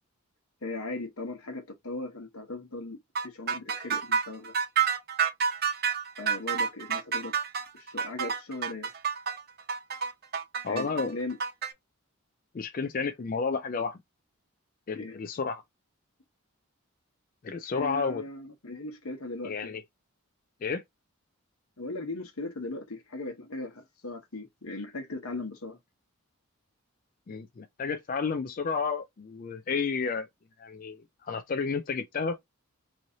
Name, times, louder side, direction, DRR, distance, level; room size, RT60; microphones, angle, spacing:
voice 1, 0.6-3.0 3.2-4.6 6.2-7.3 7.7-8.9 10.7-11.4 15.0-15.2 17.7-19.8 21.8-25.8, left 2 dB, 80° left, 1.2 m, -38 dB
sound 1, 3.2-11.7, right 6 dB, 45° right, 0.8 m, -29 dB
voice 2, 10.6-11.2 12.5-14.0 14.9-15.6 17.4-18.2 19.4-19.8 20.6-20.8 27.3-30.3 30.6-32.4, left 5 dB, 40° left, 0.3 m, -31 dB
3.1 x 2.7 x 3.7 m
head